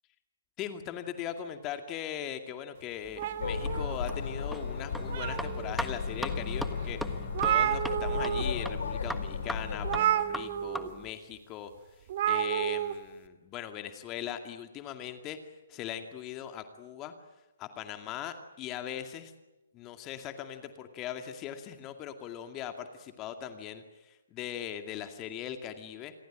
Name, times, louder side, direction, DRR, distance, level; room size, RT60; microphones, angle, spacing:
voice 1, 0.6-11.7 12.2-15.4 15.7-17.1 17.6-19.3 19.7-26.1, left 10 dB, 25° left, 7 dB, 2.3 m, -40 dB
sound 1, 3.0-11.1, equal, ahead, 1.5 m, -41 dB
sound 2, 3.2-4.4 4.8-5.7 6.3-6.4 6.8-6.9 7.1-8.5 8.7-8.9 9.8-10.9 12.1-12.9, right 11 dB, 45° right, 2.8 m, -30 dB
sound 3, 3.4-10.0, left 5 dB, 65° left, 4.4 m, -35 dB
28.5 x 22.0 x 8.9 m, 1.0 s
figure-of-eight pair, 130°, 0 cm